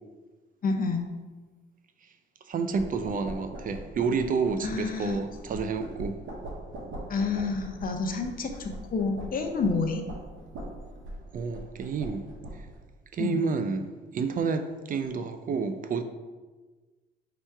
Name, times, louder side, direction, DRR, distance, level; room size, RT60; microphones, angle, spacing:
voice 1, 0.6-1.1 4.6-5.2 7.1-10.0 13.2-13.4, left 4 dB, 45° left, 4 dB, 0.6 m, -29 dB
voice 2, 2.5-6.2 11.3-12.2 13.1-13.9 14.1-16.0, right 5 dB, 45° right, 8 dB, 0.4 m, -29 dB
sound 1, 2.7-12.8, right 1 dB, 80° right, 1.0 m, -42 dB
3.3 x 3.0 x 4.5 m, 1.3 s
cardioid pair, 90°, 20 cm